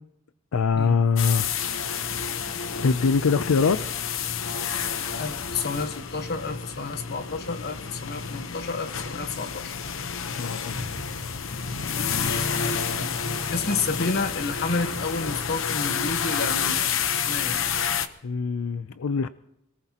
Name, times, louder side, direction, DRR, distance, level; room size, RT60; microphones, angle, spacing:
voice 1, 0.5-1.5 2.8-3.8 10.4-10.8 18.2-19.3, left 5 dB, 85° left, 13 dB, 0.5 m, -23 dB
sound 1, 1.2-18.1, left 7 dB, 65° left, 0.9 m, -29 dB
voice 2, 5.2-9.7 12.2-12.6 13.5-16.9 17.1-17.7, left 3 dB, 50° left, 8 dB, 1.3 m, -30 dB
26.0 x 18.5 x 2.9 m, 0.81 s
head